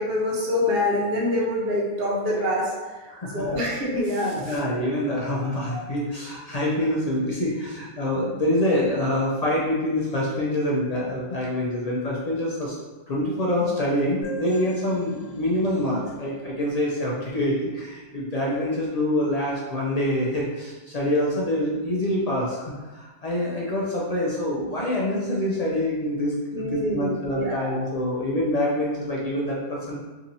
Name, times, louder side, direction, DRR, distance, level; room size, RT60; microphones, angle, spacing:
voice 1, 0.0-2.7 3.3-4.6 26.5-27.7, left 1 dB, 65° right, -4 dB, 1.1 m, -25 dB
voice 2, 3.1-3.6 4.3-12.8 13.1-29.9, left 1 dB, 45° left, -5 dB, 0.6 m, -26 dB
sound 1, 14.2-17.8, left 1 dB, 25° right, 1.6 m, -41 dB
2.8 x 2.8 x 3.9 m, 1.2 s
omnidirectional pair, 1.1 m